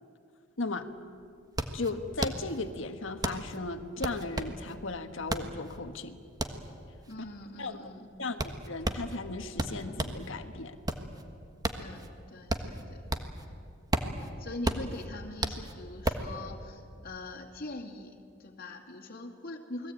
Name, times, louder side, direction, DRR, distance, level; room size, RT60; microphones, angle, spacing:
voice 1, 0.6-0.9 1.7-6.2 7.6-7.9 8.2-10.8, left 3 dB, 65° left, 7 dB, 1.5 m, -36 dB
sound 1, 0.6-0.7 1.0-10.3 10.6-13.5 13.7-16.3, right 1 dB, 20° right, 1.4 m, -34 dB
voice 2, 7.1-8.3 11.8-13.0 13.5-13.6 14.2-19.9, left 2 dB, 50° left, 0 dB, 2.5 m, -43 dB
29.0 x 21.0 x 8.9 m, 2.4 s
head